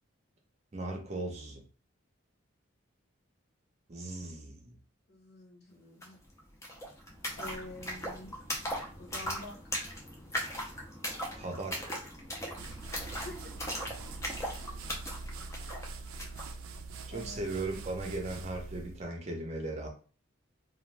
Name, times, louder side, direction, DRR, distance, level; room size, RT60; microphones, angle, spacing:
voice 1, 0.7-1.6 3.9-4.8 11.3-12.0 17.1-19.9, right 2 dB, 30° right, 2 dB, 0.6 m, -37 dB
voice 2, 5.1-6.2 7.4-8.3 9.0-9.5 13.2-13.4 17.1-17.8, left 1 dB, 50° left, -1 dB, 0.8 m, -47 dB
sound 1, 6.0-6.1 6.3-16.5, equal, 15° left, 0.5 m, -39 dB
sound 2, 12.6-19.1, right 3 dB, 90° right, 0.4 m, -43 dB
2.3 x 2.2 x 3.1 m, 0.38 s
head